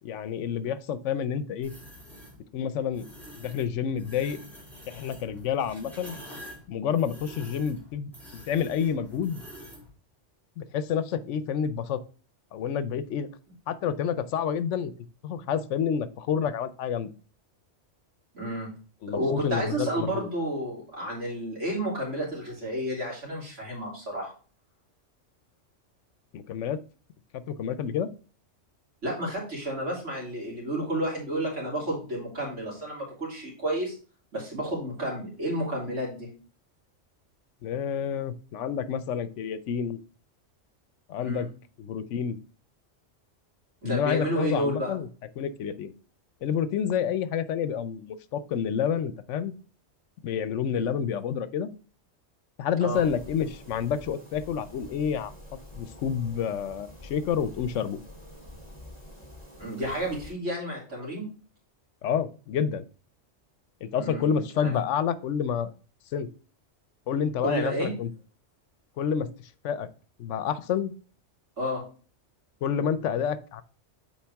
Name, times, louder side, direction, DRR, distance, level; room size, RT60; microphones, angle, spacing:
voice 1, 0.0-1.7 2.5-3.1 3.4-4.4 4.9-6.1 6.7-9.4 10.6-12.0 12.5-13.3 13.7-14.9 15.2-17.1 19.0-20.3 26.3-26.8 27.3-28.1 37.6-40.0 41.1-41.5 41.8-42.4 43.8-45.1 45.4-45.9 46.4-49.5 50.2-51.7 52.6-55.3 55.8-58.0 62.0-62.8 63.8-65.7 66.1-66.3 67.1-68.1 69.0-69.3 69.6-69.9 70.2-70.9 72.6-73.6, left 8 dB, 80° left, 14 dB, 1.0 m, -29 dB
sound 1, 1.6-2.3 2.9-3.7 4.0-9.9, equal, ahead, 3.7 m, -46 dB
voice 2, 18.3-18.7 19.1-24.3 29.0-33.9 34.3-36.3 41.2-41.5 43.8-44.9 50.7-50.9 52.8-53.0 59.6-61.3 63.9-64.3 64.6-64.7 67.4-67.9 71.6-71.8, right 1 dB, 90° right, -3 dB, 3.3 m, -31 dB
sound 2, 52.9-60.3, left 1 dB, 30° left, 2.3 m, -47 dB
7.3 x 4.6 x 3.4 m, 0.38 s
omnidirectional pair, 1.2 m